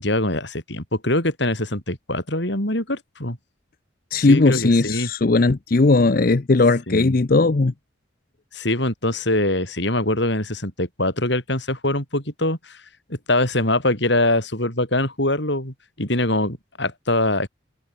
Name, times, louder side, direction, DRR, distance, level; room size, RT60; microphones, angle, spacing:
voice 1, 0.0-3.4 4.2-5.1 6.9-7.1 8.5-12.8 13.1-17.5, left 1 dB, 60° left, 6.4 m, -23 dB
voice 2, 4.1-7.7, left 3 dB, 45° left, 0.6 m, -17 dB
head